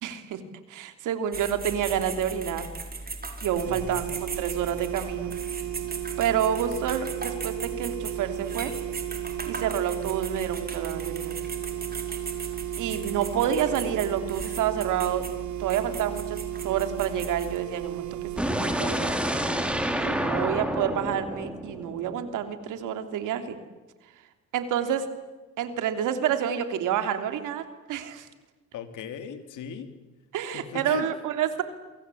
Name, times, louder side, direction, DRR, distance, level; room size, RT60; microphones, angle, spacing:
voice 1, 0.0-0.4 0.7-2.7 3.4-5.3 6.2-8.7 9.5-11.3 12.8-15.3 15.6-16.4 16.6-18.1 18.5-19.1 20.0-23.6 24.5-25.1 25.6-28.3 30.3-31.6, right 9 dB, 85° right, 9 dB, 3.2 m, -28 dB
sound 1, 1.3-17.6, right 3 dB, 30° right, 4.9 m, -38 dB
sound 2, 3.6-18.4, right 17 dB, 70° right, 1.8 m, -34 dB
voice 2, 3.7-4.1 28.7-29.9 30.5-31.1, left 8 dB, 80° left, 9 dB, 3.4 m, -37 dB
sound 3, 18.4-22.3, equal, 5° right, 4.3 m, -28 dB
28.0 x 25.0 x 8.6 m, 1.2 s
cardioid pair, 90°, 30 cm